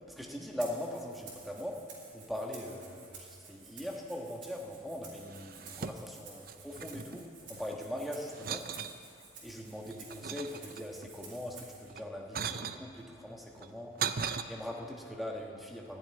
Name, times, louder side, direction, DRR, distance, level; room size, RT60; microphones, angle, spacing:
voice 1, 0.1-1.8 2.1-7.2 7.5-8.6 9.4-13.9 14.5-16.0, left 1 dB, ahead, -1 dB, 1.2 m, -41 dB
Rattle (instrument), 0.6-11.9, right 4 dB, 85° right, 3.1 m, -53 dB
sound 1, 5.2-6.2 6.5-7.8 8.3-9.0 9.6-11.1 11.9-12.8 13.6-14.4, right 7 dB, 50° right, 0.4 m, -38 dB
12.0 x 7.6 x 9.8 m, 2.5 s
head